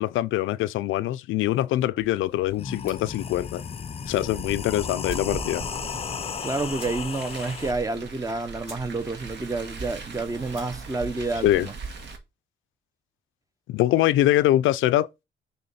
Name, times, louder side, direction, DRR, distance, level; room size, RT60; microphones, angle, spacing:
voice 1, 0.0-3.6 4.1-5.6 11.4-11.7 13.7-15.1, left 14 dB, 85° left, 0.4 m, -23 dB
sound 1, 2.0-2.1 2.5-7.7, left 6 dB, 30° left, 0.5 m, -34 dB
sound 2, 2.8-3.2 4.6-4.7 5.0-5.4 5.8-5.9 6.1-6.2 6.7-7.3 7.7-7.8 8.3-8.4 8.6-8.9 9.2-9.6 10.4-10.7, right 2 dB, 35° right, 3.0 m, -48 dB
Car, 4.0-12.2, right 4 dB, 60° right, 1.5 m, -40 dB
voice 2, 6.4-11.7, right 3 dB, 15° right, 0.7 m, -29 dB
6.3 x 3.5 x 5.5 m
cardioid pair, 90°, 20 cm